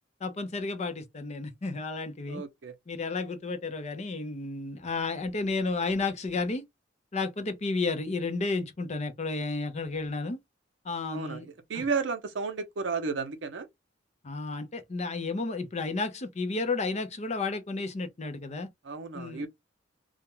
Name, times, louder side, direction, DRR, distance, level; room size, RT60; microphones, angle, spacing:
voice 1, 0.2-2.4 2.9-6.6 7.1-10.4 10.8-11.5 11.7-11.9 14.2-18.7 19.1-19.5, left 3 dB, 35° left, 0.5 m, -32 dB
voice 2, 2.3-2.7 11.1-11.4 11.7-13.7 18.9-19.5, right 4 dB, 70° right, 0.6 m, -32 dB
2.3 x 2.1 x 2.9 m
head